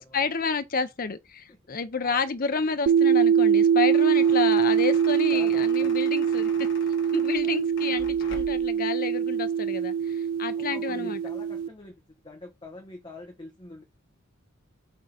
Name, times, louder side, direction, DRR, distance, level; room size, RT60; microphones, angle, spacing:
voice 1, 0.1-6.5 7.1-9.9 10.4-11.2, left 4 dB, 45° left, 0.7 m, -30 dB
sound 1, 2.9-11.7, right 7 dB, 80° right, 0.4 m, -23 dB
sound 2, 3.6-8.8, left 3 dB, 60° left, 1.4 m, -45 dB
voice 2, 5.3-6.1 7.4-7.7 10.5-13.8, left 2 dB, 25° left, 1.3 m, -45 dB
6.6 x 3.8 x 5.0 m
head